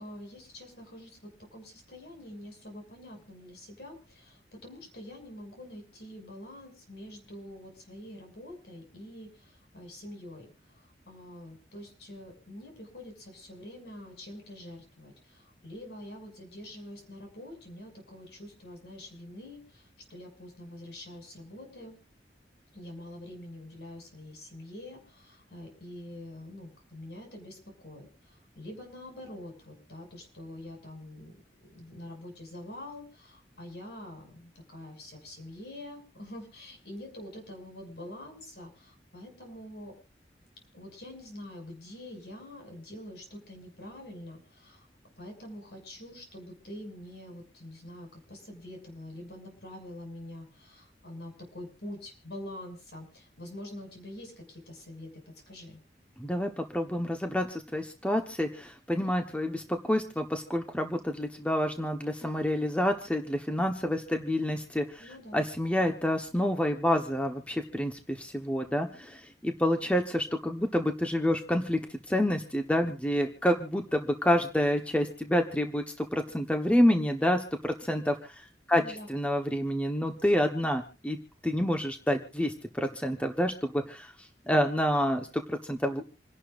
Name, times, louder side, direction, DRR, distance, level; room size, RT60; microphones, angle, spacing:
voice 1, 0.0-22.0 22.7-31.3 31.7-39.9 40.7-44.9 45.2-55.1 55.5-55.8 65.0-65.5 78.7-79.1, left 1 dB, 70° left, 2 dB, 6.5 m, -45 dB
voice 2, 56.2-65.0 65.3-75.8 76.1-78.1 78.7-78.8 79.1-81.2 81.4-84.1 84.5-86.0, equal, 5° left, 4 dB, 1.1 m, -28 dB
28.0 x 11.5 x 2.5 m, 0.33 s
head